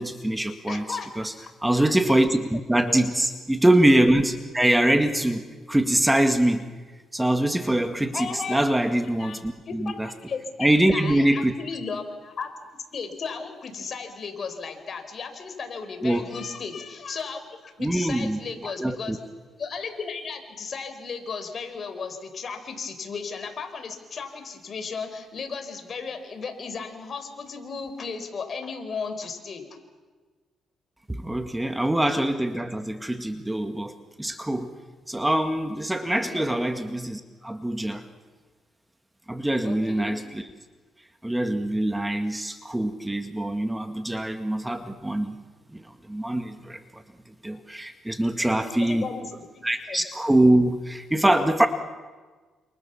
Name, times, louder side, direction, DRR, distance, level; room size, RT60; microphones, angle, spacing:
voice 1, 0.0-1.3 1.6-6.6 7.1-10.1 10.6-11.5 16.0-16.3 17.8-19.2 31.1-33.9 34.2-34.7 35.1-38.0 39.3-40.5 41.2-45.4 45.7-47.0 47.4-49.1 49.6-51.7, right 1 dB, 10° right, 8 dB, 1.8 m, -24 dB
voice 2, 0.7-1.5 2.8-3.1 8.1-8.6 9.2-9.4 9.7-19.2 19.6-29.7 36.3-36.5 39.6-40.2 48.6-49.3 49.9-50.0, left 5 dB, 50° left, 6 dB, 4.6 m, -35 dB
29.0 x 27.5 x 7.1 m, 1.4 s
cardioid pair, 90°, 0 cm